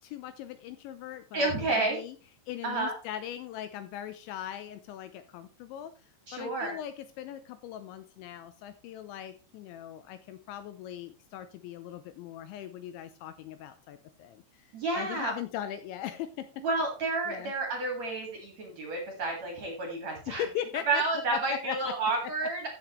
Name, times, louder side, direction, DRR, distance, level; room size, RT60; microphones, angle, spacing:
voice 1, 0.0-2.2 2.5-16.6 17.3-17.5 20.3-21.0 21.3-21.9 22.2-22.3, left 11 dB, 80° left, 10 dB, 2.8 m, -40 dB
voice 2, 1.3-2.0 2.6-2.9 6.3-6.8 14.7-15.3 16.6-20.4 20.9-22.7, right 3 dB, 50° right, 1 dB, 2.3 m, -30 dB
14.5 x 6.4 x 3.1 m, 0.34 s
omnidirectional pair, 5.6 m